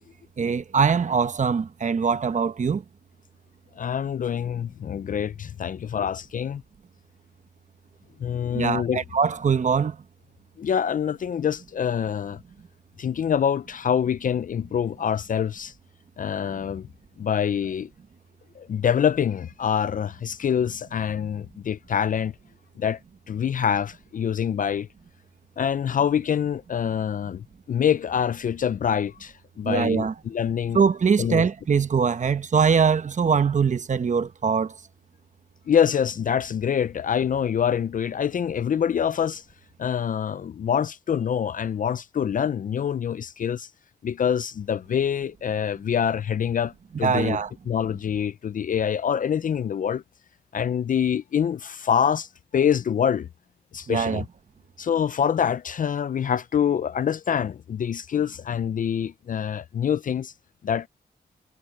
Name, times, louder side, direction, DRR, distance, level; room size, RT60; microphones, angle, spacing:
voice 1, 0.4-2.8 8.5-10.0 29.6-30.1 30.7-34.7 47.0-47.5 53.9-54.2, right 6 dB, 45° right, 0.9 m, -22 dB
voice 2, 3.8-6.6 8.2-9.0 10.6-12.4 13.0-15.7 16.2-16.9 17.2-17.9 18.6-22.3 22.8-23.0 23.3-24.9 25.6-30.8 31.2-31.4 35.7-39.4 39.8-43.7 44.0-46.7 47.0-50.0 50.5-52.3 52.5-53.3 53.7-54.2 54.8-60.3 60.6-60.9, left 8 dB, 50° left, 0.4 m, -25 dB
wide cardioid pair, 125°, 17 cm